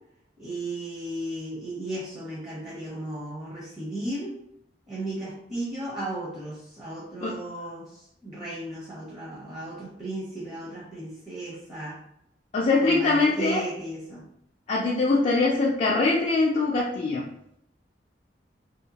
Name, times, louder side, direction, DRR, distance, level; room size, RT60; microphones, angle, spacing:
voice 1, 0.4-4.3 4.9-12.0 12.8-14.3, right 1 dB, 25° right, -7 dB, 0.8 m, -35 dB
voice 2, 12.5-13.6 14.7-17.3, left 3 dB, 40° left, -4 dB, 0.4 m, -23 dB
2.8 x 2.1 x 2.7 m, 0.77 s
head